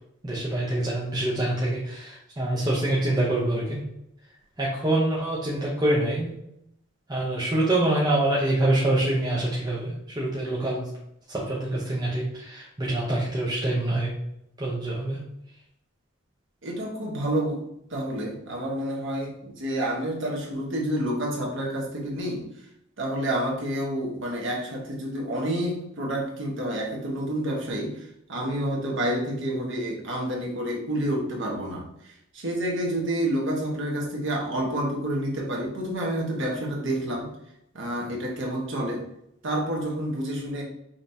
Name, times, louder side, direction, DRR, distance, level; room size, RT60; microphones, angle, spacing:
voice 1, 0.2-3.8 4.6-6.3 7.1-10.9 11.3-14.1 14.6-15.2, right 1 dB, 20° right, -6 dB, 0.7 m, -25 dB
voice 2, 16.6-17.6 17.9-22.4 23.0-37.3 37.7-39.0 39.4-40.6, right 1 dB, 60° right, -1 dB, 1.1 m, -29 dB
5.1 x 3.0 x 2.7 m, 0.78 s
head